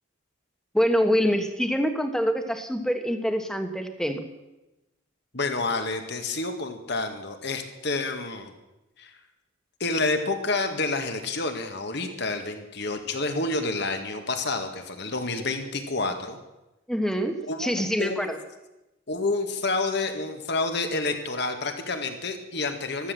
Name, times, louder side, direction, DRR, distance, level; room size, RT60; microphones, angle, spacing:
voice 1, 0.7-4.2 16.9-18.4, equal, 5° left, 7 dB, 1.2 m, -25 dB
voice 2, 5.3-8.5 9.0-9.1 9.8-16.4 17.5-18.2 19.1-23.1, left 3 dB, 55° left, 6 dB, 1.9 m, -29 dB
14.0 x 12.5 x 7.7 m, 0.99 s
head